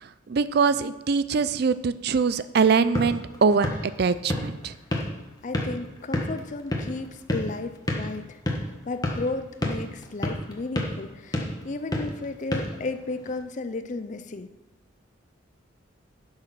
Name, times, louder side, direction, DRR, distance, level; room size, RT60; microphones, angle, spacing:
voice 1, 0.0-4.7, right 5 dB, 55° right, 14 dB, 0.4 m, -23 dB
sound 1, 2.6-13.4, left 1 dB, 20° left, 1.4 m, -32 dB
voice 2, 5.4-8.4 8.9-14.5, left 3 dB, 40° left, 10 dB, 0.5 m, -34 dB
11.5 x 6.4 x 6.0 m, 1.0 s
head